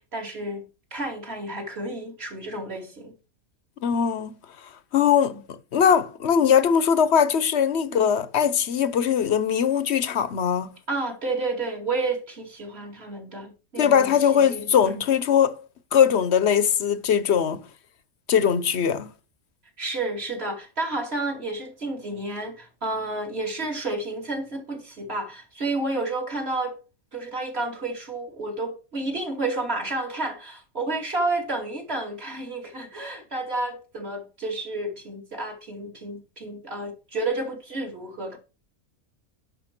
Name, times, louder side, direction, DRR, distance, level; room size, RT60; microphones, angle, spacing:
voice 1, 0.1-0.6 0.9-3.1 5.3-5.4 7.9-8.1 10.9-15.0 19.8-26.8 27.1-38.4, right 2 dB, 45° right, 2.8 m, -31 dB
voice 2, 3.8-4.4 4.9-10.7 13.8-15.6 15.9-17.6 18.3-19.1, left 8 dB, 55° left, 1.0 m, -21 dB
10.5 x 5.7 x 5.9 m
omnidirectional pair, 1.5 m